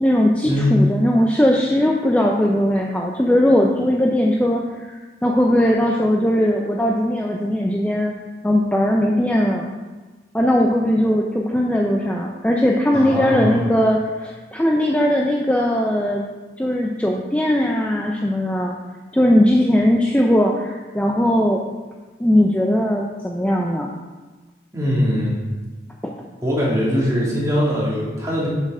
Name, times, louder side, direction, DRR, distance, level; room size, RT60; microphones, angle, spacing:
voice 1, 0.0-8.1 8.4-9.7 10.3-16.3 16.6-18.8 19.1-21.6 22.2-23.9 26.0-26.1, equal, 10° left, -1 dB, 0.5 m, -19 dB
voice 2, 12.9-13.6 24.7-25.4 26.4-28.5, equal, 20° right, -6 dB, 2.3 m, -21 dB
7.4 x 6.6 x 4.9 m, 1.3 s
head